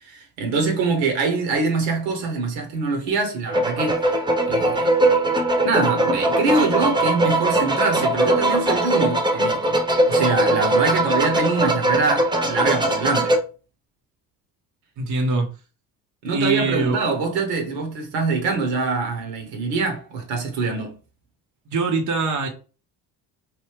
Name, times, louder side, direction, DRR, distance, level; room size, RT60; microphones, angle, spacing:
voice 1, 0.0-4.0 4.5-4.9 5.6-9.8 10.0-13.4 16.2-21.0, right 4 dB, 65° right, 1.2 m, -24 dB
sound 1, 3.5-13.4, right 1 dB, 10° right, 0.7 m, -20 dB
voice 2, 15.0-15.5 16.3-17.0 21.7-22.5, right 3 dB, 35° right, 1.0 m, -23 dB
3.1 x 2.7 x 3.3 m
hypercardioid pair, 65°, 48 cm